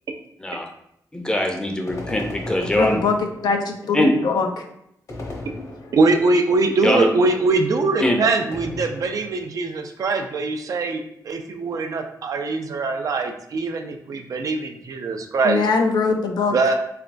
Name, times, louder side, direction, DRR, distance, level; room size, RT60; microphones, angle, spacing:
voice 1, 1.1-3.0 3.9-4.1 6.8-7.1 8.0-8.2, left 1 dB, 10° left, 2 dB, 0.5 m, -21 dB
sound 1, 1.9-3.8 5.1-6.3 8.5-9.5, left 2 dB, 50° left, 0.8 m, -35 dB
voice 2, 2.8-3.2 3.4-4.6 5.6-5.7 15.4-16.5, left 4 dB, 90° left, 4 dB, 0.5 m, -22 dB
voice 3, 5.9-15.6 16.5-16.7, right 3 dB, 60° right, 5 dB, 0.5 m, -22 dB
3.8 x 3.3 x 2.5 m, 0.75 s
wide cardioid pair, 125°, 7 cm